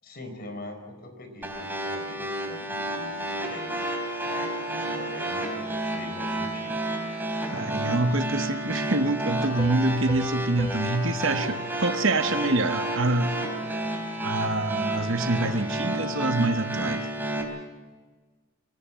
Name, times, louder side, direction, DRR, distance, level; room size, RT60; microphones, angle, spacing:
voice 1, 0.0-7.0, left 1 dB, 50° left, 4.5 m, -42 dB
sound 1, 1.4-17.4, right 1 dB, 10° right, 4.0 m, -31 dB
voice 2, 7.5-13.4 14.2-17.0, right 2 dB, 70° right, 1.1 m, -26 dB
Piano, 9.6-13.0, left 1 dB, 20° left, 3.7 m, -42 dB
24.0 x 17.5 x 7.5 m
head